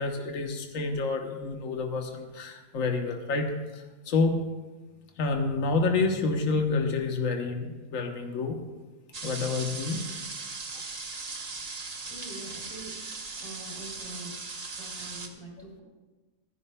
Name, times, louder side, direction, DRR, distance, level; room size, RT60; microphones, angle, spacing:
voice 1, 0.0-4.4 5.2-8.6 9.2-10.0 10.7-10.8, left 3 dB, 70° left, 4 dB, 1.4 m, -28 dB
sound 1, 9.1-15.3, right 4 dB, 35° right, 0.8 m, -38 dB
voice 2, 12.1-13.0 13.4-14.3 14.8-15.8, right 2 dB, 25° left, -4 dB, 2.9 m, -44 dB
24.5 x 11.0 x 2.2 m, 1.2 s
omnidirectional pair, 1.5 m